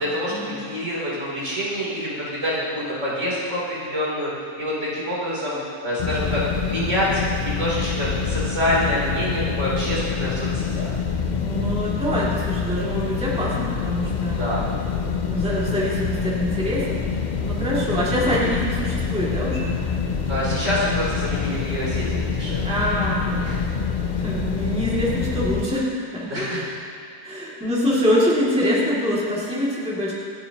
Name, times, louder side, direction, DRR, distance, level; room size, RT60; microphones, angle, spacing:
voice 1, 0.0-5.6 5.8-10.9 14.2-14.7 20.3-22.7 23.4-23.7 26.3-26.6, equal, 50° right, -8 dB, 3.9 m, -26 dB
sound 1, 6.0-25.7, left 6 dB, 45° left, 0.5 m, -26 dB
voice 2, 11.4-14.6 15.3-17.0 17.4-19.8 22.6-23.7 24.1-26.7 27.2-30.1, equal, 5° right, -8 dB, 2.4 m, -25 dB
27.5 x 9.2 x 3.0 m, 2.3 s
omnidirectional pair, 1.6 m